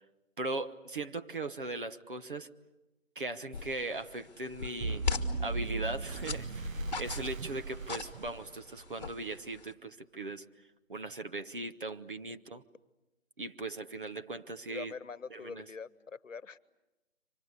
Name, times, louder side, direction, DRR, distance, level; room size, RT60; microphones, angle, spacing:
voice 1, 0.4-2.5 3.2-5.1 5.4-10.5 10.9-12.6 13.4-14.9 15.3-15.7, right 2 dB, 40° right, 10 dB, 1.0 m, -39 dB
sound 1, 3.5-9.7, left 4 dB, 35° left, 1.5 m, -40 dB
sound 2, 4.8-8.9, right 4 dB, 80° right, 1.0 m, -38 dB
voice 2, 14.7-16.6, left 5 dB, 70° left, 19 dB, 1.1 m, -44 dB
29.0 x 25.0 x 8.1 m, 1.0 s
hypercardioid pair, 175°, 39 cm